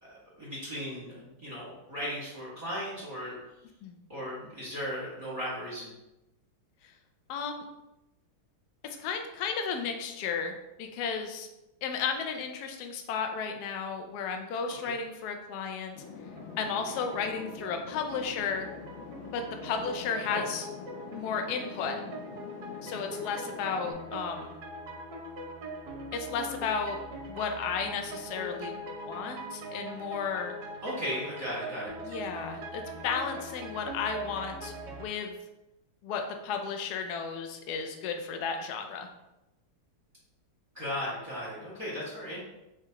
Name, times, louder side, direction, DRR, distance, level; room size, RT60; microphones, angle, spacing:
voice 1, 0.0-3.4 4.1-5.9 14.8-14.9 20.3-20.4 30.8-31.9 40.7-42.4, equal, 20° right, -9 dB, 1.3 m, -36 dB
voice 2, 7.3-7.6 9.0-11.5 11.8-16.0 16.6-18.7 19.3-20.7 21.1-22.0 22.8-24.5 26.1-27.0 27.3-28.8 29.1-30.5 32.0-34.7 35.0-35.3 36.0-39.1, left 6 dB, 90° left, 5 dB, 0.8 m, -33 dB
sound 1, 16.0-23.9, left 6 dB, 75° left, 1.3 m, -45 dB
sound 2, 16.3-35.1, right 1 dB, 65° right, 1.1 m, -42 dB
4.4 x 3.5 x 2.9 m, 0.93 s
omnidirectional pair, 2.3 m